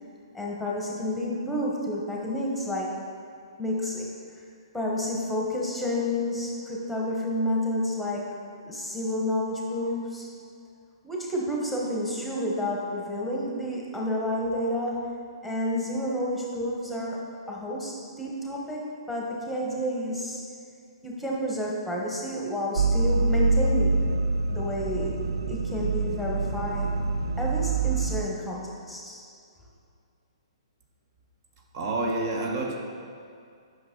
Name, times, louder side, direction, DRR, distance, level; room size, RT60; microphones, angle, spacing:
voice 1, 0.3-2.9 3.6-4.1 4.4-4.5 4.7-8.3 8.6-10.3 11.0-15.2 15.4-20.4 21.0-24.0 24.5-25.2 25.5-26.9 27.4-29.2, left 1 dB, ahead, -3 dB, 1.2 m, -30 dB
sound 1, 22.8-28.2, right 3 dB, 80° right, 0.4 m, -25 dB
voice 2, 31.7-32.8, right 2 dB, 45° right, 1 dB, 0.8 m, -28 dB
8.5 x 5.9 x 3.8 m, 2.3 s
hypercardioid pair, 140°, 3 cm